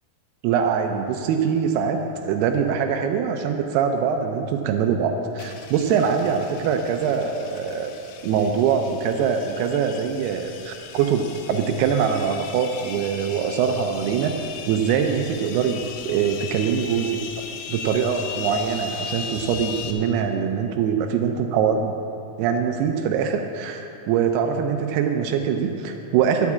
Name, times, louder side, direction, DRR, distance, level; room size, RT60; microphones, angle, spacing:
voice 1, 0.4-7.9 8.2-17.2 17.7-22.0 22.4-26.5, right 7 dB, 90° right, 4 dB, 2.7 m, -23 dB
sound 1, 5.4-19.9, left 6 dB, 80° left, 2.5 m, -37 dB
9.7 x 7.2 x 8.5 m, 2.8 s
omnidirectional pair, 4.5 m